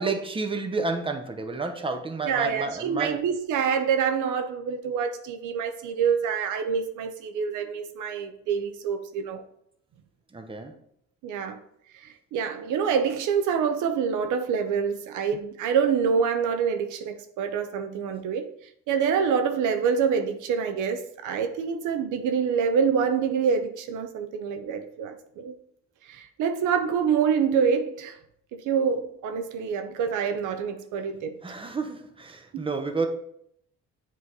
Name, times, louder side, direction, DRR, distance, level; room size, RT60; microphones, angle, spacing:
voice 1, 0.0-3.2 10.3-10.7 31.4-33.1, right 3 dB, 15° right, 0.8 m, -30 dB
voice 2, 2.3-9.4 11.2-11.6 11.9-18.5 18.9-25.5 26.1-28.2 28.5-31.3 32.5-32.6, right 6 dB, 85° right, 0.6 m, -26 dB
7.9 x 3.1 x 4.0 m
cardioid pair, 90°, 30 cm